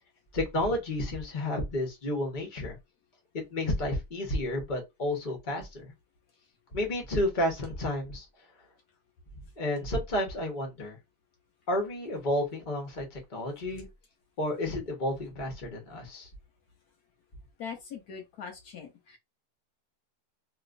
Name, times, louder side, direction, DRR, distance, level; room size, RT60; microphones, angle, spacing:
voice 1, 0.3-2.8 3.3-5.9 6.7-8.3 9.6-11.0 11.7-13.9 14.4-16.3, left 1 dB, 35° left, 1.1 m, -31 dB
voice 2, 17.6-19.2, left 6 dB, 70° left, 1.3 m, -42 dB
3.1 x 2.9 x 2.5 m
omnidirectional pair, 1.7 m